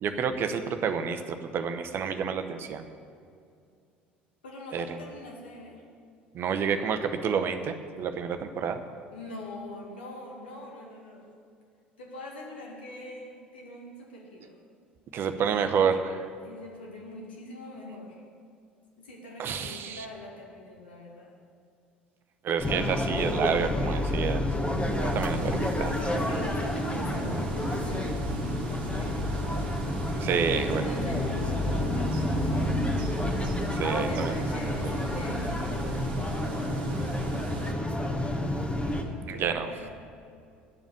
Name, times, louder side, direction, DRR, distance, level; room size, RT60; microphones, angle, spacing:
voice 1, 0.0-2.8 4.7-4.8 6.3-8.8 15.1-16.2 19.4-20.0 22.4-24.4 25.0-26.0 30.2-30.8 33.7-34.3 39.3-39.7, right 6 dB, 45° right, 8 dB, 0.8 m, -29 dB
voice 2, 4.4-5.8 9.1-11.3 12.0-14.6 16.4-18.2 19.0-21.4 26.0-32.4 33.8-37.9 39.3-39.9, left 1 dB, 75° left, -2 dB, 2.1 m, -43 dB
sound 1, 22.6-39.0, left 1 dB, 20° left, 1.5 m, -29 dB
sound 2, 24.4-37.7, right 6 dB, 70° right, 0.8 m, -40 dB
9.8 x 7.2 x 8.8 m, 2.3 s
figure-of-eight pair, 60°, 5 cm